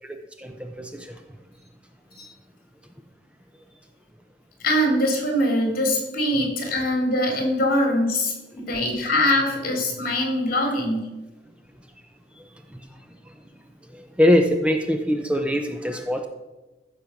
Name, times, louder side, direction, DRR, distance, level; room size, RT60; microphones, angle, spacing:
voice 1, 0.0-1.2 6.4-6.5 12.4-13.3 13.9-16.3, left 1 dB, 5° right, 5 dB, 0.7 m, -24 dB
voice 2, 4.6-11.0, left 1 dB, 55° left, 1 dB, 3.7 m, -23 dB
15.0 x 6.8 x 5.9 m, 1.1 s
head